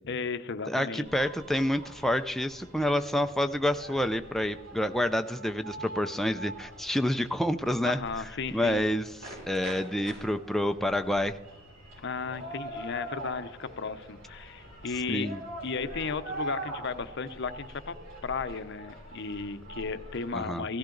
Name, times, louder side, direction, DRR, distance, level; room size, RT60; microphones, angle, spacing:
voice 1, 0.0-1.3 7.8-8.8 12.0-15.3 15.6-17.9 18.2-20.8, left 5 dB, 60° left, 12 dB, 0.8 m, -35 dB
voice 2, 0.7-8.0 8.5-11.4 15.1-15.4 20.3-20.7, left 1 dB, ahead, 7 dB, 0.4 m, -28 dB
sound 1, 1.0-20.3, right 1 dB, 70° right, 5.7 m, -44 dB
16.5 x 14.5 x 3.9 m, 1.0 s
head